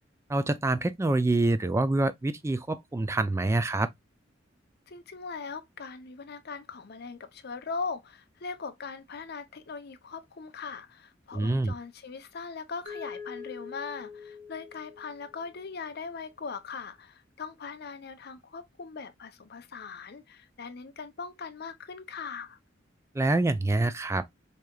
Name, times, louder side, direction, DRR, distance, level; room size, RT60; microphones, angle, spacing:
voice 1, 0.3-3.9 11.3-11.7 23.1-24.2, right 2 dB, 15° right, 0.3 m, -26 dB
voice 2, 4.9-22.6, left 5 dB, 55° left, 0.6 m, -40 dB
Mallet percussion, 12.9-15.8, left 5 dB, 85° right, 1.5 m, -44 dB
4.7 x 2.8 x 2.3 m
head